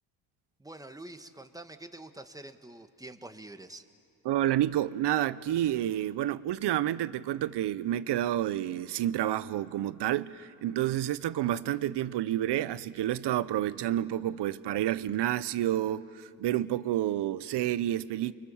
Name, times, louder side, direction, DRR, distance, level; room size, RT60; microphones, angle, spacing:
voice 1, 0.6-3.8, right 2 dB, 10° right, 1.6 m, -46 dB
voice 2, 4.2-18.3, right 12 dB, 65° right, 0.9 m, -29 dB
29.5 x 23.5 x 7.2 m
supercardioid pair, 70°, 45 cm